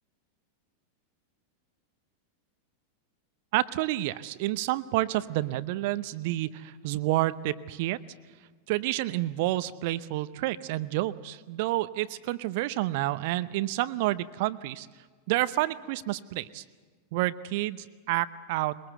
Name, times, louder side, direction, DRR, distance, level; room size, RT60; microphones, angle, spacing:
voice 1, 3.5-8.0 8.7-14.9 15.3-16.6 17.1-18.8, right 16 dB, 50° right, 15 dB, 0.7 m, -29 dB
22.0 x 21.5 x 7.8 m, 1.4 s
figure-of-eight pair, 90°, 0 cm